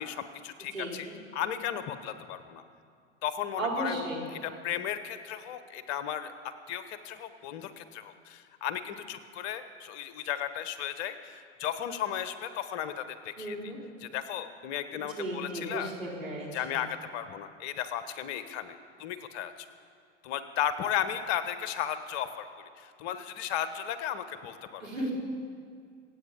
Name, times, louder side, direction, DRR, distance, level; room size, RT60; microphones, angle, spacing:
voice 1, 0.0-1.1 1.3-2.6 3.2-6.3 6.7-13.7 14.0-15.9 16.5-19.7 20.2-24.9, left 9 dB, 60° left, 11 dB, 1.3 m, -35 dB
voice 2, 0.7-1.1 3.6-4.2 13.4-13.8 15.2-16.8 24.8-25.1, right 1 dB, 85° right, -3 dB, 4.2 m, -35 dB
25.5 x 8.8 x 5.3 m, 2.2 s
hypercardioid pair, 85°, 38 cm